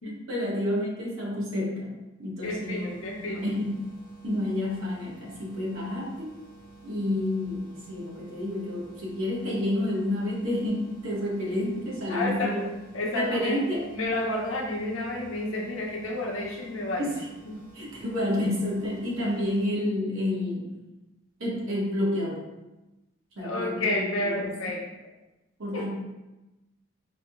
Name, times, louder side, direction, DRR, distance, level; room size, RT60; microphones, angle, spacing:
voice 1, 0.0-1.9 2.2-2.9 3.2-3.7 4.2-6.3 6.8-12.7 13.1-13.9 17.0-17.3 17.7-20.7 21.4-22.4 23.4-24.6 25.6-25.9, left 1 dB, 75° right, -4 dB, 1.1 m, -29 dB
voice 2, 2.4-3.4 12.1-12.5 12.9-13.6 13.9-17.1 23.4-24.8 25.7-25.9, left 1 dB, 75° left, -1 dB, 0.7 m, -30 dB
sound 1, 2.4-19.7, right 3 dB, 45° right, 1.2 m, -51 dB
4.4 x 2.8 x 2.5 m, 1.0 s
head